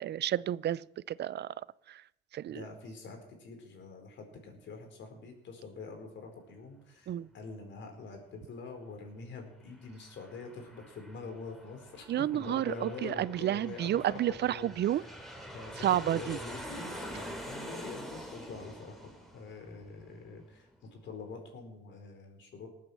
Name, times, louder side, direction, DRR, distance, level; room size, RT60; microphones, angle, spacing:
voice 1, 0.0-1.6 1.9-2.0 2.3-2.7 7.1-7.3 12.1-15.0 15.8-16.4, right 12 dB, 60° right, 0.5 m, -31 dB
voice 2, 2.5-14.7 15.5-22.7, left 4 dB, 70° left, 4.6 m, -45 dB
Aircraft, 9.5-20.7, equal, ahead, 3.4 m, -46 dB
19.0 x 8.7 x 7.3 m
cardioid pair, 90°, 20 cm